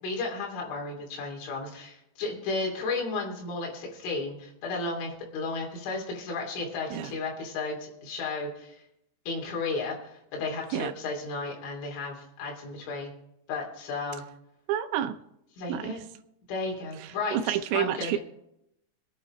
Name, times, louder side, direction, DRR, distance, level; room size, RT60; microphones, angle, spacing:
voice 1, 0.0-8.8 9.3-13.1 13.5-14.2 15.6-16.0 16.5-18.2, left 3 dB, 70° left, -2 dB, 5.4 m, -33 dB
voice 2, 14.7-15.1 15.7-15.9 17.3-18.2, right 10 dB, 80° right, 9 dB, 3.1 m, -28 dB
24.0 x 9.4 x 3.2 m, 0.79 s
omnidirectional pair, 5.7 m